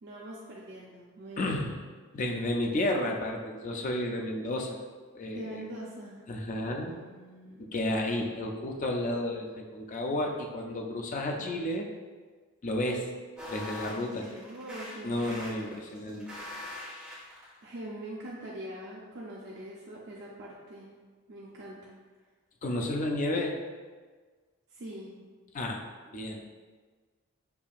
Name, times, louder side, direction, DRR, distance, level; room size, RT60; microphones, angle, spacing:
voice 1, 0.0-1.8 5.3-6.3 6.8-7.7 11.4-11.6 13.9-15.2 15.5-16.2 17.6-20.9 21.3-21.9 24.7-25.2, right 1 dB, 55° right, -5 dB, 0.5 m, -44 dB
voice 2, 1.4-1.7 2.1-4.8 5.1-5.5 6.3-6.9 7.6-11.9 12.6-13.1 13.5-14.3 15.0-16.3 22.6-23.6 25.5-25.8 26.1-26.4, left 1 dB, 35° left, 2 dB, 0.4 m, -32 dB
sound 1, 13.4-17.6, left 1 dB, 5° right, 1.3 m, -42 dB
6.8 x 2.7 x 2.4 m, 1.4 s
head